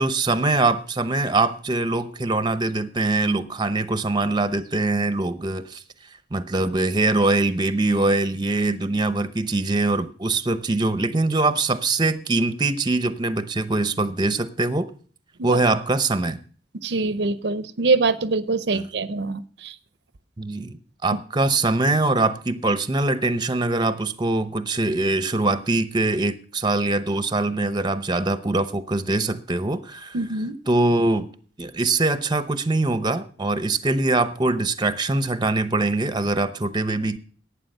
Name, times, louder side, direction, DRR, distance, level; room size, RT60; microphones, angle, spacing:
voice 1, 0.0-5.8 6.3-14.9 15.4-16.4 18.7-18.8 20.4-30.2 30.7-31.3 31.6-37.2, right 2 dB, 25° right, 13 dB, 0.8 m, -23 dB
voice 2, 16.8-19.8 30.1-30.6, right 3 dB, 65° right, 15 dB, 0.7 m, -24 dB
11.5 x 8.8 x 6.6 m, 0.43 s
head